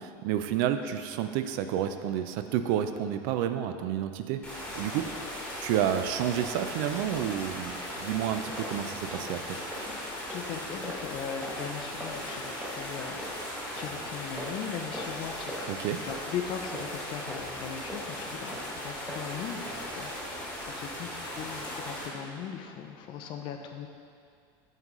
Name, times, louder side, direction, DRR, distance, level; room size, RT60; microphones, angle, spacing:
voice 1, 0.0-5.1 5.6-9.6 15.7-16.0, right 10 dB, 65° right, 9 dB, 0.4 m, -30 dB
sound 1, 4.4-22.1, left 1 dB, 10° left, 1.2 m, -38 dB
sound 2, 8.5-8.7 9.1-9.3 9.7-9.8 10.3-10.4 10.8-11.1 11.4-11.6 12.0-12.1 12.6-12.8 13.2-13.3 13.8-13.9 14.4-14.6 14.9-15.2 15.5-15.7 16.1-16.2 16.7-16.9 17.3-17.5 17.9-18.0 18.5-18.6 19.1-19.2 19.7-19.8 20.2-20.3, equal, 5° right, 0.9 m, -40 dB
voice 2, 10.3-13.4 13.8-15.8 16.1-20.1 20.8-23.9, left 8 dB, 45° left, 5 dB, 0.5 m, -39 dB
9.0 x 3.8 x 3.1 m, 2.3 s
cardioid pair, 155°, 12 cm